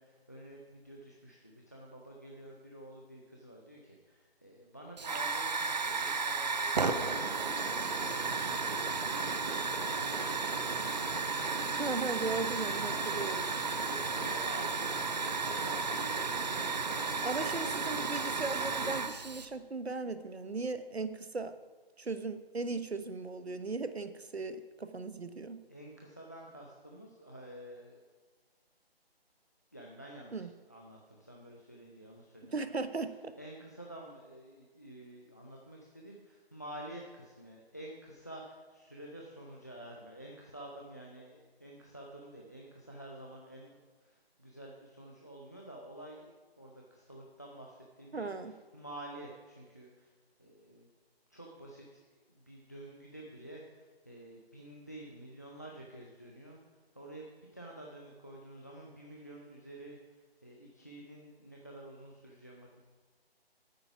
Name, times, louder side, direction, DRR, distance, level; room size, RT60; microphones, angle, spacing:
voice 1, 0.0-11.1 12.9-13.1 13.8-14.8 15.3-18.3 25.7-28.0 29.7-32.6 33.4-50.1 50.4-50.9 51.3-56.6 56.9-62.8, right 1 dB, 15° left, -1 dB, 0.5 m, -50 dB
Hiss / Fire, 5.0-19.5, right 4 dB, 45° right, 0.7 m, -33 dB
voice 2, 11.8-13.5 17.2-21.6 22.0-25.6 30.3-30.5 32.5-33.3 48.1-48.5, right 3 dB, 90° right, 11 dB, 1.0 m, -37 dB
9.2 x 9.0 x 5.9 m, 1.4 s
figure-of-eight pair, 155°, 31 cm